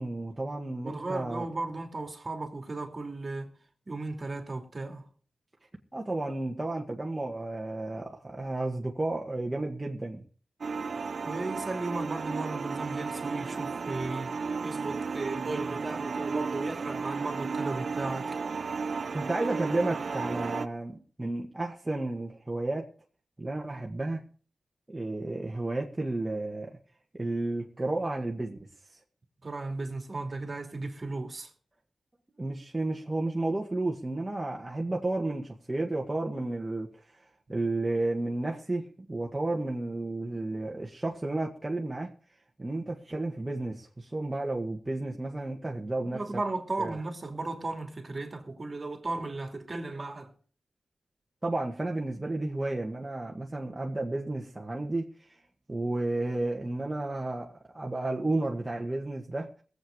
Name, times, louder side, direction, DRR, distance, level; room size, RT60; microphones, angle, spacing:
voice 1, 0.0-1.4 5.9-10.2 19.1-22.9 23.4-24.2 24.9-26.8 27.2-28.6 28.9-29.0 32.4-36.9 37.5-42.1 42.6-46.2 46.8-47.0 51.4-55.1 55.7-59.5, right 2 dB, 20° right, 1.9 m, -32 dB
voice 2, 0.8-3.5 3.9-5.1 11.2-14.4 14.6-18.3 29.4-31.5 37.5-37.7 46.0-50.3, right 2 dB, 40° right, 2.8 m, -35 dB
sound 1, 10.6-20.7, right 5 dB, 65° right, 0.6 m, -34 dB
19.0 x 8.2 x 5.3 m
wide cardioid pair, 75°, 0 cm